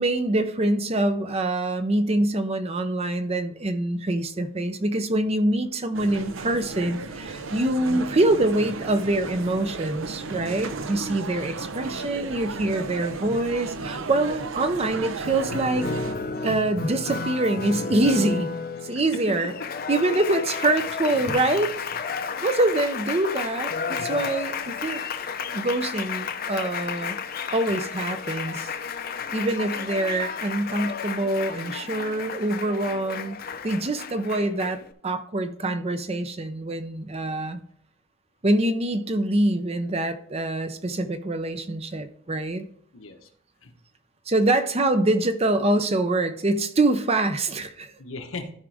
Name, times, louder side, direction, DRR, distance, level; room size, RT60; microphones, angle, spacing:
voice 1, 0.0-15.9 16.4-18.6 18.8-19.5 19.9-21.7 22.4-25.0 25.5-27.2 27.5-28.7 29.3-33.4 33.6-37.6 38.4-42.6 44.3-47.9, right 2 dB, 30° right, 10 dB, 0.6 m, -25 dB
sound 1, 5.9-16.2, right 4 dB, 75° right, 0.7 m, -34 dB
voice 2, 11.0-11.4 18.9-19.7 22.2-22.5 42.9-43.3 43.6-43.7 48.0-48.5, left 3 dB, 85° left, 5 dB, 1.2 m, -39 dB
Applause, 15.2-34.9, left 5 dB, 45° left, 0.6 m, -32 dB
13.5 x 5.0 x 3.4 m, 0.66 s
head